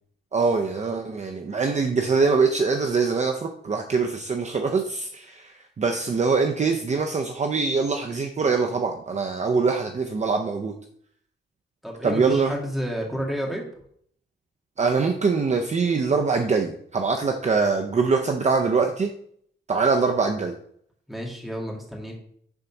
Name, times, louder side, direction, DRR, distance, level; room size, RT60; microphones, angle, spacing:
voice 1, 0.3-10.7 12.0-12.5 14.8-19.1 19.7-20.5, right 4 dB, 35° right, 3 dB, 0.6 m, -23 dB
voice 2, 11.8-13.6 21.1-22.2, equal, ahead, -1 dB, 1.8 m, -30 dB
7.1 x 4.0 x 5.8 m, 0.65 s
wide cardioid pair, 150°, 20 cm